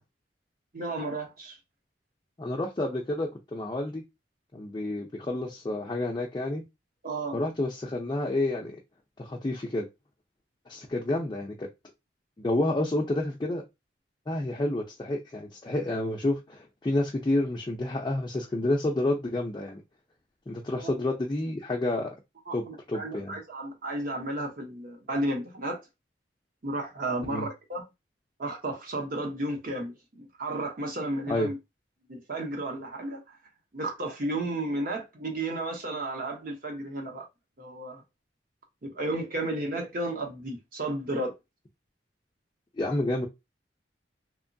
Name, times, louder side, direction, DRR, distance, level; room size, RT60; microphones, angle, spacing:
voice 1, 0.7-1.6 7.0-7.4 20.8-21.0 22.5-25.8 26.6-27.8 28.4-31.6 32.1-33.4 33.7-37.3 37.6-38.0 38.8-41.3, right 2 dB, 50° right, 0.8 m, -33 dB
voice 2, 2.4-4.0 4.5-6.6 7.3-8.7 9.2-9.9 10.7-11.7 12.4-13.6 14.3-19.8 20.5-22.1 22.5-23.4 27.3-27.5 31.3-31.5 42.8-43.3, left 1 dB, 25° left, 0.4 m, -29 dB
2.9 x 2.1 x 2.6 m
head